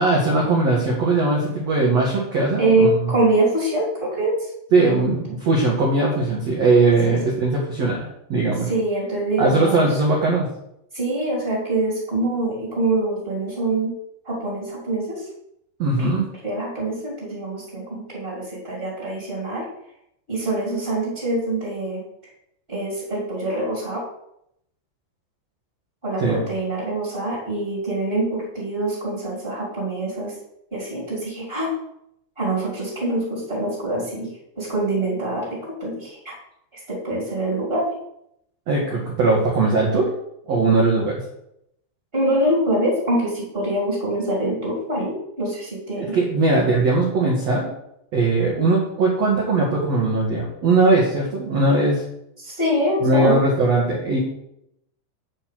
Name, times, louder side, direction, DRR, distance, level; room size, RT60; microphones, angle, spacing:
voice 1, 0.0-3.1 4.7-8.7 9.4-10.5 15.8-16.2 26.2-26.4 38.7-40.0 40.5-41.2 46.0-47.7 48.1-52.0 53.0-54.2, right 3 dB, 90° right, -3 dB, 1.4 m, -19 dB
voice 2, 2.6-4.5 7.0-7.2 8.6-10.0 10.9-13.9 14.2-15.3 16.0-16.1 16.4-19.6 20.3-22.0 22.7-24.0 26.0-30.3 30.7-31.7 32.3-36.3 36.7-37.9 42.1-46.2 52.4-53.4, right 1 dB, 20° right, -4 dB, 1.6 m, -24 dB
8.8 x 4.7 x 7.5 m, 0.78 s
omnidirectional pair, 5.8 m